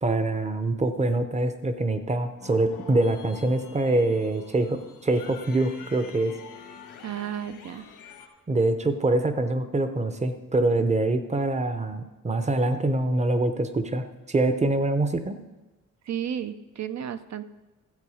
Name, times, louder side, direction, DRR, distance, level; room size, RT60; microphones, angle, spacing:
voice 1, 0.0-6.3 8.5-15.4, right 2 dB, 20° right, 9 dB, 0.7 m, -25 dB
sound 1, 2.4-8.3, left 6 dB, 85° left, 1.5 m, -46 dB
voice 2, 7.0-7.9 16.0-17.4, right 9 dB, 55° right, 12 dB, 0.6 m, -33 dB
14.0 x 7.9 x 4.9 m, 1.1 s
wide cardioid pair, 145°, 32 cm